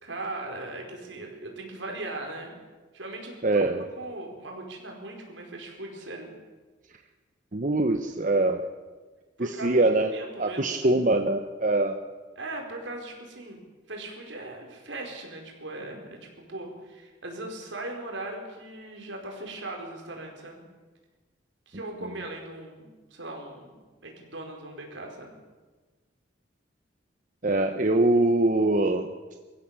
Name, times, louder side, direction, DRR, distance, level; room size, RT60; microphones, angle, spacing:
voice 1, 0.0-2.5 2.9-3.4 4.0-6.3 9.4-9.8 10.1-10.9 12.3-13.6 13.9-20.7 21.7-25.3, right 2 dB, 75° right, 1 dB, 5.1 m, -39 dB
voice 2, 3.4-3.8 7.5-8.6 9.4-10.1 10.4-12.0 27.4-29.1, right 2 dB, 45° right, 6 dB, 1.0 m, -23 dB
24.0 x 15.0 x 7.5 m, 1.3 s
head